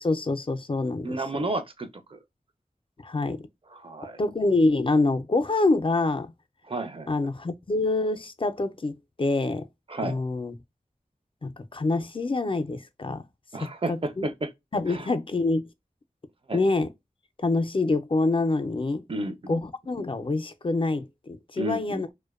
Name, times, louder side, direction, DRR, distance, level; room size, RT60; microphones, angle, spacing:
voice 1, 0.0-1.1 3.0-3.4 4.2-6.3 7.1-9.7 10.0-10.5 11.4-13.2 13.5-14.3 14.7-15.6 16.5-16.9 17.4-19.0 19.5-22.1, left 2 dB, 35° left, 0.4 m, -26 dB
voice 2, 1.0-2.2 3.7-4.2 6.7-7.1 9.9-10.2 13.5-14.5 14.9-15.1 16.5-16.6 19.1-19.6 21.6-22.0, right 2 dB, 40° right, 0.5 m, -32 dB
2.5 x 2.1 x 2.3 m
wide cardioid pair, 55°, 14 cm